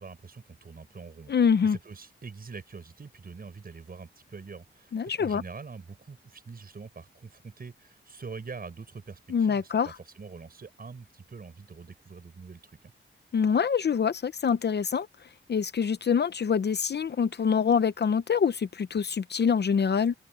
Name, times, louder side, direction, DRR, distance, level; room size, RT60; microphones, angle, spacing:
voice 1, 0.0-1.3 1.6-12.9, right 5 dB, 45° right, 6.9 m, -44 dB
voice 2, 1.3-1.8 4.9-5.4 9.3-10.0 13.3-15.1 15.5-20.1, left 6 dB, 50° left, 0.7 m, -25 dB
wide cardioid pair, 180°, 21 cm